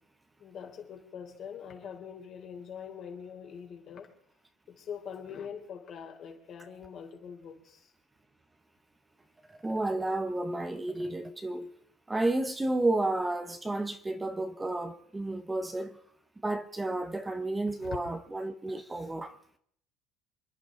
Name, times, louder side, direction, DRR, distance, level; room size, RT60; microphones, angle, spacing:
voice 1, 0.4-4.1 4.7-7.9 17.8-18.0, left 7 dB, 45° left, 3.3 m, -43 dB
voice 2, 9.6-11.7 12.1-16.0 16.4-19.3, right 2 dB, 10° right, 0.9 m, -31 dB
27.5 x 11.0 x 3.8 m
cardioid pair, 135°, 0 cm